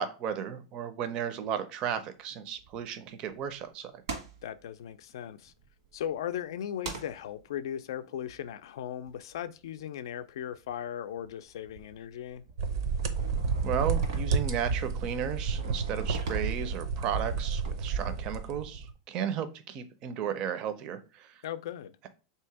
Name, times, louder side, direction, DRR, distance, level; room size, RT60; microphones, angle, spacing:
voice 1, 0.0-4.0 13.6-21.4, right 8 dB, 30° right, 0.5 m, -34 dB
sound 1, 2.2-3.6 4.1-6.4 6.8-9.8 10.2-10.9 11.2-18.4, right 4 dB, 90° right, 1.3 m, -46 dB
voice 2, 4.4-5.5 5.9-12.4 21.4-21.9, left 10 dB, 80° left, 0.4 m, -37 dB
sound 2, 12.6-18.9, right 5 dB, 70° right, 0.6 m, -31 dB
3.4 x 2.8 x 4.5 m
supercardioid pair, 165°, 2 cm